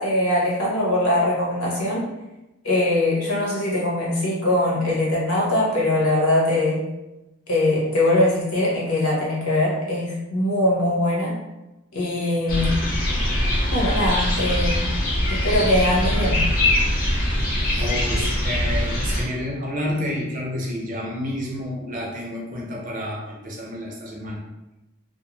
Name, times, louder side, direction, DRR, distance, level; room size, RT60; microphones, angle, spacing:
voice 1, 0.0-2.1 2.6-6.8 7.5-11.3 11.9-12.7 13.7-14.9 15.4-16.4, left 1 dB, 90° left, -4 dB, 1.0 m, -21 dB
sound 1, 12.5-19.2, left 1 dB, 40° left, 0.6 m, -22 dB
voice 2, 17.7-24.4, left 1 dB, 40° right, -2 dB, 0.5 m, -29 dB
2.4 x 2.3 x 3.0 m, 0.98 s
head